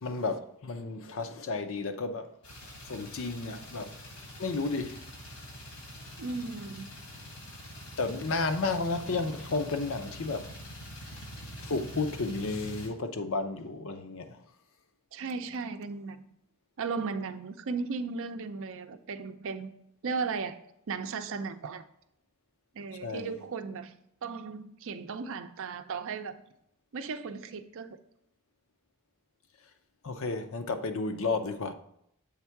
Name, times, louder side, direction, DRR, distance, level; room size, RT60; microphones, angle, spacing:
voice 1, 0.0-2.3 2.9-3.9 4.4-5.0 8.0-10.4 11.6-14.4 23.0-23.3 30.0-31.7, left 3 dB, 65° left, 0.6 m, -32 dB
sound 1, 2.4-12.9, equal, 85° left, 2.3 m, -45 dB
voice 2, 6.2-6.9 15.1-16.2 16.8-19.7 20.0-20.6 20.9-21.8 22.7-23.9 24.2-26.4 26.9-28.0, right 4 dB, 65° right, 0.5 m, -36 dB
7.2 x 3.6 x 4.5 m
head